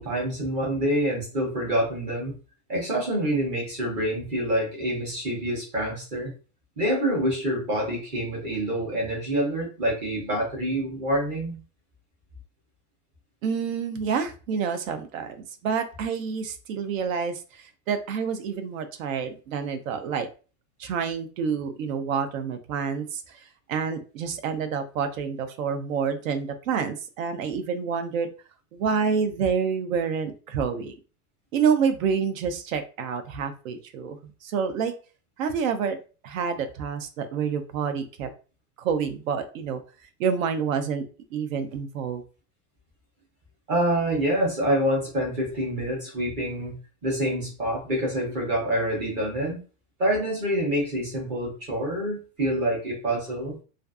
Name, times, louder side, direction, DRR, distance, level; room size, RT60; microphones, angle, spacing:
voice 1, 0.0-2.3 2.7-6.3 6.8-11.6 43.7-46.7 47.0-49.6 50.0-53.5, right 1 dB, 20° right, -2 dB, 0.5 m, -26 dB
voice 2, 13.4-20.3 20.8-23.4 23.7-28.3 28.7-30.9 31.5-34.9 35.4-36.0 36.2-38.3 38.8-39.8 40.2-41.0 41.3-42.2, right 6 dB, 65° right, 8 dB, 0.5 m, -28 dB
2.5 x 2.4 x 2.3 m, 0.35 s
supercardioid pair, 170°, 44 cm